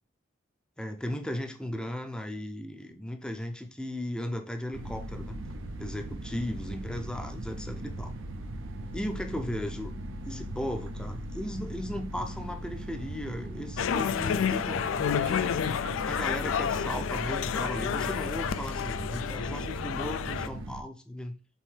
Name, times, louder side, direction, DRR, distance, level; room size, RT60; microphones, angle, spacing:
voice 1, 0.8-5.4 5.8-8.1 8.9-9.9 10.2-15.6 16.1-21.4, left 1 dB, 5° left, 5 dB, 0.5 m, -36 dB
sound 1, 4.7-20.8, right 1 dB, 75° right, 0.5 m, -38 dB
sound 2, 13.8-20.5, left 8 dB, 80° left, 0.3 m, -30 dB
5.4 x 2.7 x 3.2 m, 0.38 s
head